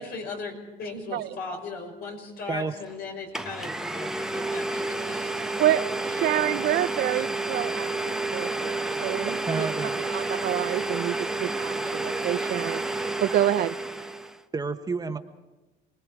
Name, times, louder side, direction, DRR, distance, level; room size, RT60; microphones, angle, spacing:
voice 1, 0.0-5.6 6.4-6.7, left 4 dB, 70° left, 2 dB, 5.6 m, -38 dB
Domestic sounds home sounds, 2.9-3.0 3.3-14.4, right 2 dB, 5° right, 0.9 m, -30 dB
voice 2, 5.6-7.9 8.3-9.7 10.1-13.8, right 13 dB, 70° right, 14 dB, 0.6 m, -28 dB
voice 3, 9.3-10.0 14.5-15.2, right 4 dB, 20° right, 6 dB, 1.2 m, -30 dB
28.5 x 20.5 x 4.9 m, 1.1 s
cardioid pair, 110°, 17 cm